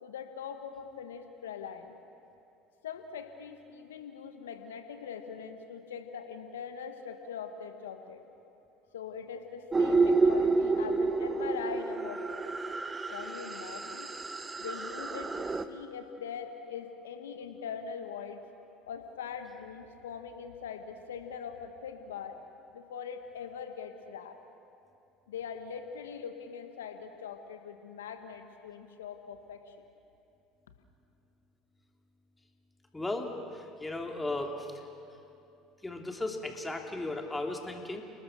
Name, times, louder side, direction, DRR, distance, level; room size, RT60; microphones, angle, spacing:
voice 1, 0.0-1.9 2.8-8.2 8.9-12.5 13.1-14.1 14.6-18.4 18.9-22.4 22.7-24.3 25.3-29.7, left 7 dB, 85° left, 7 dB, 1.5 m, -42 dB
sound 1, 9.7-15.6, right 3 dB, 20° right, 1.2 m, -29 dB
voice 2, 32.9-34.7 35.8-38.0, left 2 dB, 15° left, 3 dB, 3.3 m, -36 dB
30.0 x 19.5 x 6.7 m, 2.7 s
hypercardioid pair, 70°, 0 cm